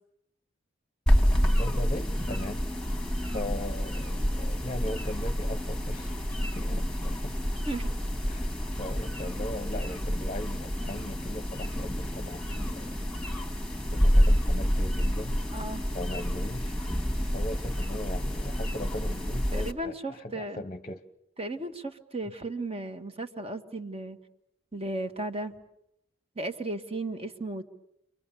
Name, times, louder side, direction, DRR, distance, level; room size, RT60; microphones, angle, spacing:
sound 1, 1.1-19.7, equal, 5° left, 1.9 m, -28 dB
voice 1, 1.4-2.6 3.0-6.2 6.5-7.3 8.3-8.5 8.8-13.0 13.9-15.4 15.9-16.7 17.2-21.0, left 1 dB, 30° left, 0.9 m, -39 dB
voice 2, 15.5-15.8 19.5-20.6 21.4-24.2 24.7-25.5 26.3-27.6, right 2 dB, 30° right, 1.7 m, -35 dB
29.5 x 24.0 x 7.0 m
head